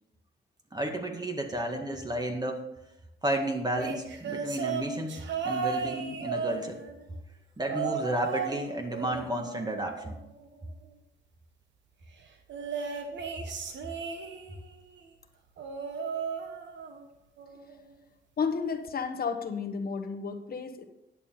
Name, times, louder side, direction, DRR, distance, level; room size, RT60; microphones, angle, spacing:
voice 1, 0.7-2.6 3.2-6.8 7.6-10.2, right 1 dB, 20° right, 3 dB, 1.9 m, -32 dB
sound 1, 3.8-7.1 7.6-8.6 8.9-10.4 12.5-14.7 15.6-17.1 17.4-17.8 18.9-19.0, right 5 dB, 85° right, 1.3 m, -35 dB
voice 2, 18.4-20.8, left 5 dB, 55° left, 7 dB, 1.1 m, -32 dB
10.5 x 7.1 x 5.8 m, 0.86 s
cardioid pair, 90°, 18 cm